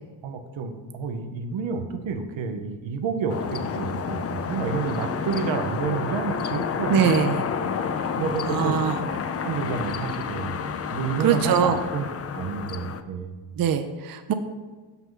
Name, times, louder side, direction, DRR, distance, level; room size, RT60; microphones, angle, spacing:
voice 1, 0.2-7.1 7.6-7.7 8.2-8.8 9.4-10.5 10.9-12.1 12.3-13.4, right 5 dB, 75° right, 6 dB, 0.8 m, -29 dB
sound 1, 3.3-13.0, left 6 dB, 35° left, 0.4 m, -30 dB
voice 2, 6.9-7.4 8.5-8.9 11.2-11.8 13.6-14.3, right 8 dB, 50° right, 8 dB, 0.5 m, -22 dB
5.9 x 5.7 x 3.7 m, 1.4 s
cardioid pair, 70°, 46 cm